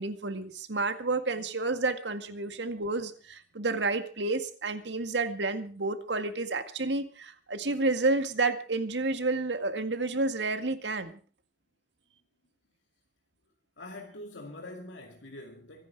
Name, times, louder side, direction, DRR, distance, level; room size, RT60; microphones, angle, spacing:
voice 1, 0.0-11.2, right 3 dB, 70° right, 2.0 m, -30 dB
voice 2, 13.8-15.9, left 1 dB, 90° left, 2.3 m, -44 dB
24.5 x 10.0 x 4.8 m
head